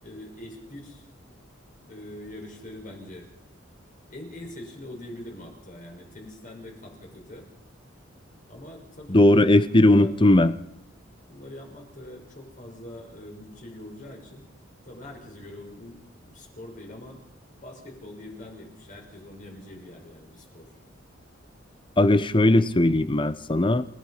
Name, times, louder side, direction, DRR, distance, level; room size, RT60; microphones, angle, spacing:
voice 1, 0.0-1.0 1.8-3.3 4.1-7.5 8.5-9.5 9.9-10.1 11.3-14.5 14.9-17.2 17.6-20.7, left 1 dB, 45° left, 0 dB, 6.1 m, -43 dB
voice 2, 9.1-10.5 22.0-23.8, left 1 dB, 25° left, 13 dB, 0.9 m, -18 dB
29.5 x 17.0 x 5.8 m, 0.79 s
head